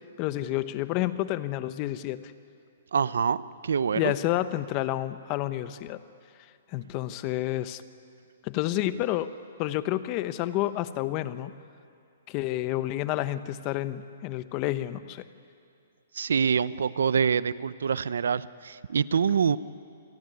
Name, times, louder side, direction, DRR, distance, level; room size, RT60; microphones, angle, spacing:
voice 1, 0.2-2.3 4.0-6.0 6.7-7.8 8.4-9.3 9.6-11.5 12.3-15.2, left 14 dB, 30° left, 13 dB, 1.0 m, -29 dB
voice 2, 2.9-4.1 16.1-19.6, right 6 dB, 80° right, 17 dB, 0.7 m, -25 dB
27.5 x 19.5 x 9.6 m, 2.4 s
hypercardioid pair, 150°, 0 cm